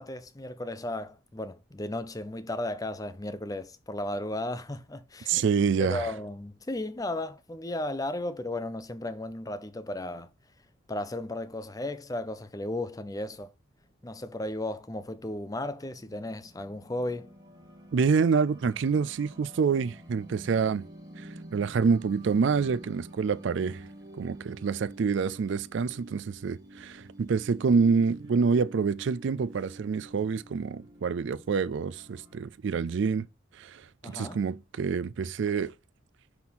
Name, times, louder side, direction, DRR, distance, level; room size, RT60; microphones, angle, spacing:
voice 1, 0.0-5.4 5.8-10.3 10.9-13.5 14.0-17.3 34.0-34.4, left 1 dB, 15° left, 0.5 m, -35 dB
voice 2, 5.3-6.1 17.9-20.9 21.2-23.8 24.2-33.3 33.6-35.7, right 5 dB, 60° right, 0.4 m, -27 dB
sound 1, 15.4-32.4, right 1 dB, 20° right, 1.7 m, -49 dB
6.1 x 5.6 x 4.1 m
head